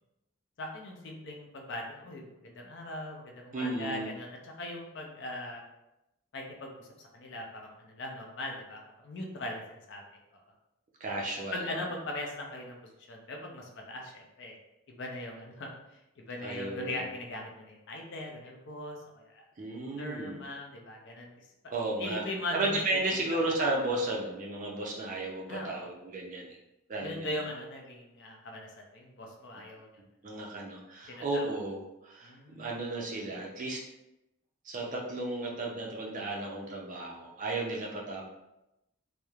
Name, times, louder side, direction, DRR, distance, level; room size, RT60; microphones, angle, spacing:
voice 1, 0.6-5.6 6.3-10.0 10.3-10.4 11.5-12.8 13.1-14.6 14.9-15.7 16.2-19.4 20.0-21.3 22.0-22.8 25.5-25.9 27.0-28.7 28.9-29.9 31.1-31.5 32.2-32.7, left 1 dB, 55° left, 1 dB, 0.4 m, -40 dB
voice 2, 3.5-4.1 11.0-11.6 16.4-17.0 19.6-20.4 21.7-22.2 22.5-26.6 26.9-27.4 30.2-33.8 34.6-38.2, right 2 dB, 35° right, -1 dB, 0.4 m, -34 dB
2.9 x 2.0 x 2.3 m, 0.91 s
head